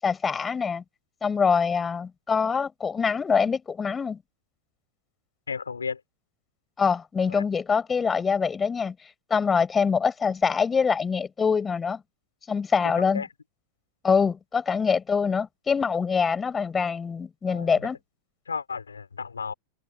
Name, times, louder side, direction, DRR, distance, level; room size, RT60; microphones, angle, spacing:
voice 1, 0.0-0.8 1.2-4.2 6.8-8.9 9.3-12.0 12.5-13.2 14.0-18.0, left 5 dB, 15° left, 7.7 m, -24 dB
voice 2, 5.5-6.0 7.3-7.4 13.0-13.3 17.5-17.9 18.5-19.5, left 5 dB, 75° left, 5.9 m, -34 dB
figure-of-eight pair, 90°, 0 cm